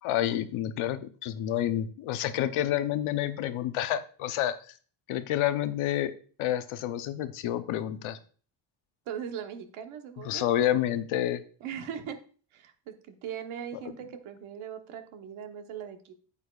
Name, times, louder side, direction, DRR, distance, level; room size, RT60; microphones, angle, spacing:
voice 1, 0.0-4.6 5.1-6.1 6.4-8.2 10.2-11.4, left 12 dB, 80° left, 11 dB, 0.9 m, -29 dB
voice 2, 9.1-10.5 11.6-12.2 12.5-16.1, right 8 dB, 80° right, 6 dB, 1.2 m, -39 dB
8.6 x 8.3 x 2.4 m, 0.41 s
cardioid pair, 125°, 48 cm